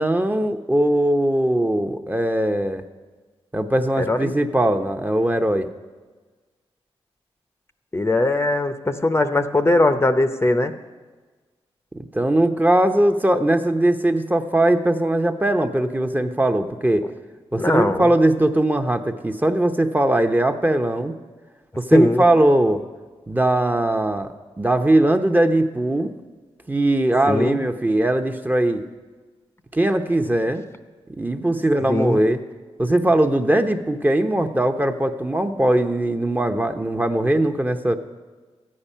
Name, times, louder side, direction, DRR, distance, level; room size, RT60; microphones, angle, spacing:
voice 1, 0.0-2.8 3.5-5.7 11.9-17.1 17.5-21.1 21.8-22.8 23.3-24.3 24.6-26.1 26.7-28.8 29.7-30.6 31.2-32.4 32.8-38.0, right 1 dB, 15° right, 5 dB, 0.8 m, -20 dB
voice 2, 4.0-4.3 7.9-10.7 17.5-18.1 21.9-22.2 27.3-27.6 31.9-32.2, left 2 dB, 25° left, 8 dB, 0.7 m, -20 dB
13.0 x 8.7 x 5.6 m, 1.4 s
cardioid pair, 60°, 11 cm